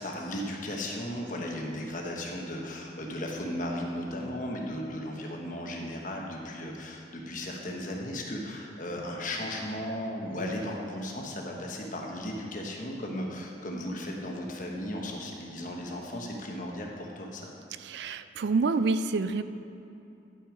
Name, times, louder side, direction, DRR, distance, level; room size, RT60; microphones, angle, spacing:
voice 1, 0.0-17.4, left 1 dB, 45° left, 0 dB, 1.1 m, -36 dB
voice 2, 17.8-19.4, right 4 dB, 65° right, 11 dB, 0.4 m, -27 dB
10.5 x 6.1 x 5.0 m, 2.8 s
head